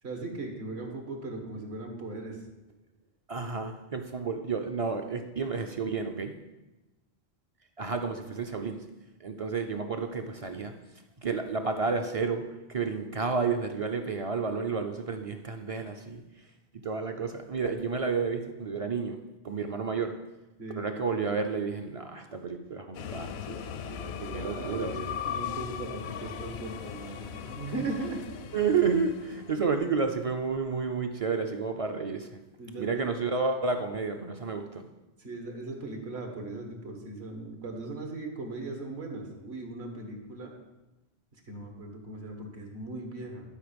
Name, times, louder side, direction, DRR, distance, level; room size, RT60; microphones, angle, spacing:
voice 1, 0.0-2.4 20.6-20.9 24.2-28.2 32.6-33.0 35.2-40.5 41.5-43.4, right 2 dB, 75° right, 3 dB, 1.7 m, -38 dB
voice 2, 3.3-6.4 7.8-8.8 9.2-10.7 11.2-16.2 16.7-19.2 19.4-20.2 20.7-25.1 28.5-32.4 32.8-34.8, right 5 dB, 45° right, 5 dB, 0.5 m, -31 dB
sound 1, 22.9-29.6, left 8 dB, 80° left, 0.8 m, -38 dB
11.5 x 4.8 x 5.2 m, 1.0 s
omnidirectional pair, 1.1 m